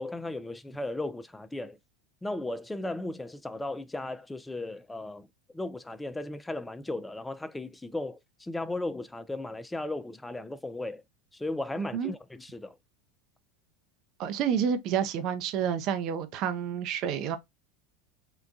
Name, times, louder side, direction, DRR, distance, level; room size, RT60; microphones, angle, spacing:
voice 1, 0.0-1.8 2.2-5.3 5.5-11.0 11.3-12.8, left 2 dB, 10° left, 0.4 m, -36 dB
voice 2, 11.8-12.1 14.2-17.4, right 8 dB, 50° right, 0.6 m, -29 dB
3.8 x 2.2 x 2.5 m
hypercardioid pair, 95°, 0 cm